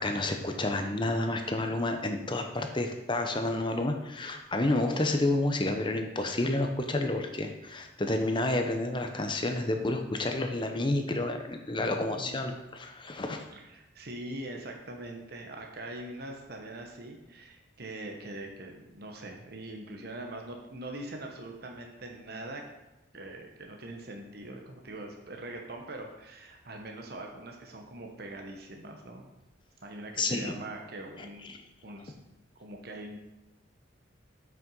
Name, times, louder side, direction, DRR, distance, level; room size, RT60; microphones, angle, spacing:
voice 1, 0.0-13.4 30.2-30.5, left 2 dB, 25° left, 5 dB, 0.9 m, -30 dB
voice 2, 11.7-12.3 13.5-22.6 23.1-29.3 29.8-31.6 31.8-32.3 32.6-33.2, right 1 dB, 55° right, 2 dB, 1.1 m, -42 dB
7.7 x 6.1 x 5.5 m, 0.97 s
head